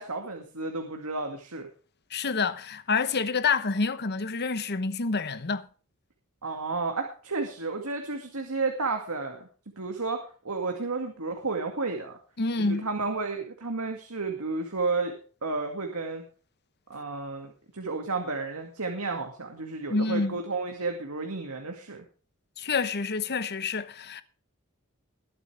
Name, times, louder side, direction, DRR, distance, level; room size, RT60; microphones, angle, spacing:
voice 1, 0.0-1.7 6.4-9.5 9.8-12.2 12.6-15.1 15.4-16.2 16.9-22.0, right 3 dB, 90° right, 2.2 m, -32 dB
voice 2, 2.1-5.7 12.4-12.8 19.9-20.4 22.6-24.2, left 4 dB, 50° left, 1.1 m, -28 dB
21.5 x 8.3 x 3.4 m
head